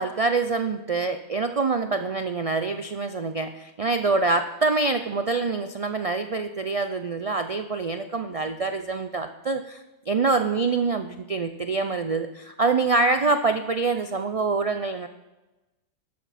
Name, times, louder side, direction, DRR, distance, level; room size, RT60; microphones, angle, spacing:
voice 1, 0.0-15.1, right 3 dB, 60° right, 8 dB, 0.3 m, -25 dB
13.0 x 12.0 x 4.2 m, 1.1 s
omnidirectional pair, 1.3 m